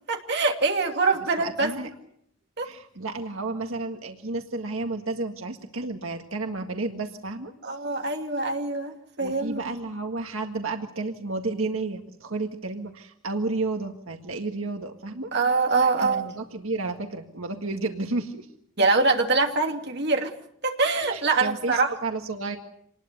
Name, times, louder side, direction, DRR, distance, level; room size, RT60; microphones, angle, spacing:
voice 1, 0.1-1.7 2.6-2.7 7.6-9.6 15.3-16.2 18.8-20.3 20.6-21.9, right 3 dB, 55° right, 3 dB, 2.7 m, -24 dB
voice 2, 1.4-1.9 2.6-7.7 9.2-15.3 15.8-18.5 21.0-22.6, right 3 dB, 85° right, 4 dB, 1.8 m, -32 dB
26.5 x 20.0 x 6.8 m, 0.69 s
head